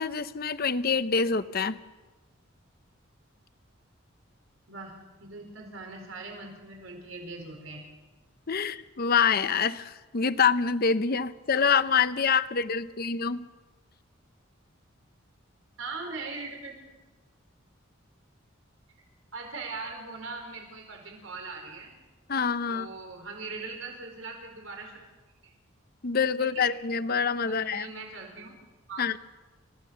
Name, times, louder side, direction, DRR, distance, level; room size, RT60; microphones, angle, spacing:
voice 1, 0.0-1.8 8.5-13.5 22.3-22.9 26.0-27.9 29.0-29.2, left 6 dB, 50° left, 13 dB, 0.7 m, -26 dB
voice 2, 4.7-7.8 15.8-17.0 19.3-21.9 22.7-24.9 25.4-25.5 26.4-26.7 27.5-28.5 28.9-29.0, right 3 dB, 80° right, 2 dB, 4.7 m, -40 dB
30.0 x 15.5 x 7.1 m, 1.2 s
head